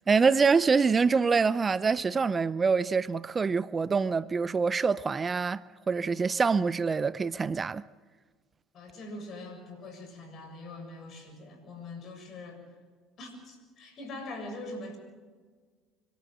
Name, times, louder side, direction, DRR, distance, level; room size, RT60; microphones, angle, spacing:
voice 1, 0.0-7.8, right 5 dB, 30° right, 0.5 m, -25 dB
voice 2, 8.7-12.6 13.2-15.0, left 2 dB, 50° left, 6.9 m, -43 dB
26.0 x 13.5 x 7.9 m
hypercardioid pair, 70°, 0 cm